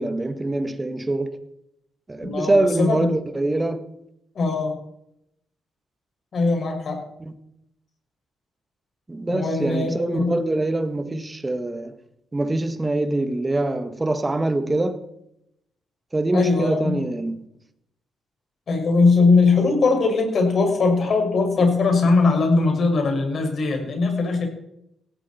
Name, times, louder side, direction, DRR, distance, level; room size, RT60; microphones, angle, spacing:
voice 1, 0.0-1.4 2.1-3.8 7.2-7.3 9.1-11.9 12.3-15.0 16.1-17.5, right 2 dB, 20° right, 1.7 m, -24 dB
voice 2, 2.2-3.1 4.3-4.7 6.3-7.0 9.3-10.4 16.3-17.0 18.7-24.5, left 3 dB, 50° left, 6.4 m, -20 dB
17.5 x 16.0 x 4.5 m
cardioid pair, 90°, 0 cm